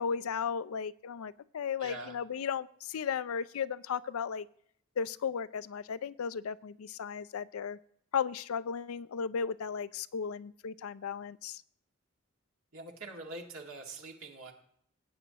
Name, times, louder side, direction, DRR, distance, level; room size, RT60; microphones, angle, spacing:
voice 1, 0.0-4.5 5.0-7.8 8.1-11.6, left 6 dB, 85° left, 17 dB, 0.4 m, -35 dB
voice 2, 1.8-2.2 12.7-14.5, right 2 dB, 85° right, 1 dB, 2.1 m, -44 dB
18.0 x 9.1 x 2.9 m, 0.66 s
head